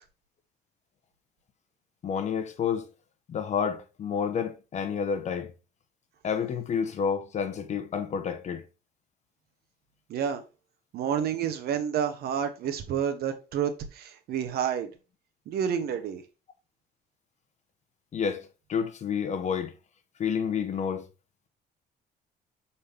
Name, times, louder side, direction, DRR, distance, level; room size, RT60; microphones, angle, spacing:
voice 1, 2.0-2.9 3.3-5.5 6.2-8.6 18.1-19.7 20.2-21.1, left 7 dB, 45° left, 1.1 m, -29 dB
voice 2, 10.1-10.4 10.9-14.9 15.5-16.2, right 8 dB, 65° right, 1.2 m, -29 dB
6.9 x 4.3 x 3.4 m
cardioid pair, 110°, 17 cm